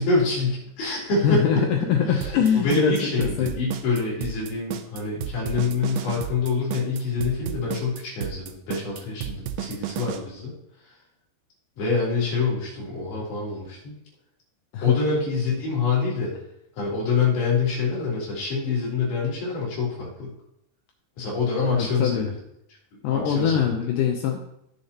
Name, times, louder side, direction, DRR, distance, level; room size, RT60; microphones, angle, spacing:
voice 1, 0.0-1.4 2.0-10.5 11.8-13.9 14.8-16.4 16.8-20.3 21.2-22.3 22.9-23.7, left 4 dB, 65° left, -6 dB, 5.3 m, -26 dB
voice 2, 1.2-3.5 14.7-15.0 21.6-22.3 23.0-24.4, left 8 dB, 85° left, 2 dB, 1.9 m, -23 dB
sound 1, 2.2-10.2, right 10 dB, 90° right, 1.9 m, -32 dB
16.0 x 6.6 x 2.9 m, 0.79 s
omnidirectional pair, 4.8 m